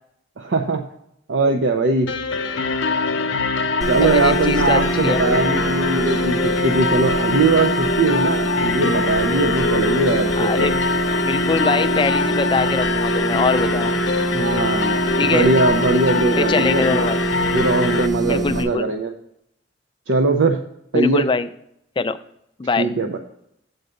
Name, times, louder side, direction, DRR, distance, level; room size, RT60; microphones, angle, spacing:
voice 1, 0.4-0.8 1.3-2.1 3.9-10.7 14.3-17.1 17.5-19.1 20.1-20.6 20.9-21.2 22.8-23.2, right 3 dB, 75° right, 3 dB, 0.6 m, -20 dB
sound 1, 2.1-18.1, left 4 dB, 90° left, 0.7 m, -23 dB
sound 2, 3.8-18.6, right 3 dB, 20° right, 1.1 m, -25 dB
voice 2, 4.0-5.2 10.4-10.7 11.2-13.9 15.2-15.5 16.4-17.2 18.2-18.9 20.9-21.5 22.0-22.2 22.6-22.9, left 4 dB, 25° left, 10 dB, 0.4 m, -22 dB
7.8 x 4.0 x 6.4 m, 0.76 s
head